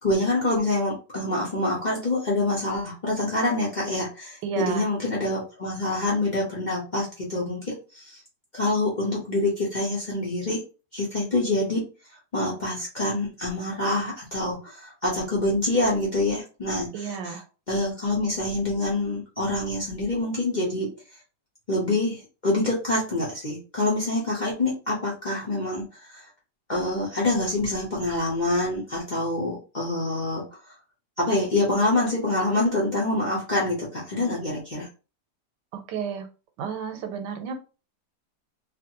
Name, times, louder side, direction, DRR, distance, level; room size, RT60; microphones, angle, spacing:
voice 1, 0.0-8.2 8.5-10.6 10.9-11.8 12.3-17.4 17.7-20.9 21.7-26.3 26.7-30.4 31.2-34.9, left 2 dB, 35° left, -5 dB, 0.7 m, -26 dB
voice 2, 4.4-4.9 16.9-17.4 35.7-36.3 36.6-37.5, right 6 dB, 85° right, 7 dB, 1.3 m, -32 dB
2.8 x 2.5 x 2.8 m, 0.33 s
omnidirectional pair, 1.8 m